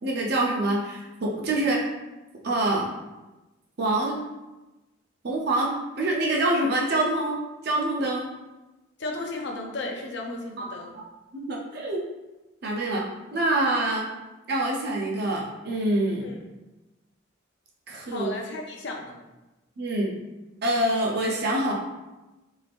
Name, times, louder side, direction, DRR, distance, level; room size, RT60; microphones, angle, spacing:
voice 1, 0.0-1.8 2.4-2.9 3.8-4.2 5.2-5.7 6.0-8.3 10.6-11.0 11.3-12.0 12.6-13.1 13.3-14.1 14.5-16.3 17.9-18.3 19.8-20.1 20.6-21.7, right 1 dB, 55° right, -2 dB, 0.6 m, -25 dB
voice 2, 9.0-10.9 16.2-16.4 18.1-19.2, left 2 dB, 60° left, 1 dB, 0.5 m, -34 dB
2.7 x 2.5 x 3.4 m, 1.1 s
head